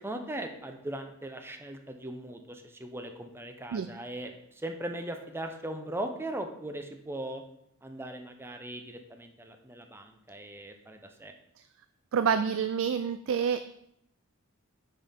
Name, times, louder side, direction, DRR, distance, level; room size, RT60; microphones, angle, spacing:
voice 1, 0.0-7.4 7.8-11.3, right 1 dB, 10° right, 5 dB, 0.7 m, -39 dB
voice 2, 12.1-13.7, right 7 dB, 65° right, 11 dB, 0.4 m, -27 dB
9.5 x 5.7 x 3.6 m, 0.75 s
head